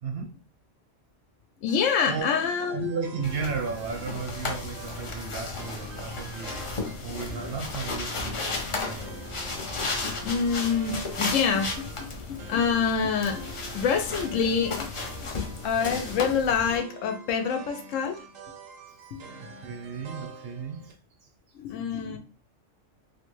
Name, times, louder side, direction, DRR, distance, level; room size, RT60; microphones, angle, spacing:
voice 1, 0.0-0.3 2.1-2.4 2.7-9.2 18.9-19.1 19.4-20.9, right 5 dB, 65° right, 4 dB, 0.7 m, -35 dB
voice 2, 1.6-2.9 10.2-15.3 15.6-18.2 19.1-19.2 21.5-22.2, left 6 dB, 85° left, 6 dB, 1.0 m, -27 dB
sound 1, 1.7-20.9, right 5 dB, 85° right, 1.0 m, -46 dB
sound 2, 3.2-16.8, left 3 dB, 50° left, 0.3 m, -34 dB
3.3 x 2.1 x 3.0 m, 0.36 s
omnidirectional pair, 1.3 m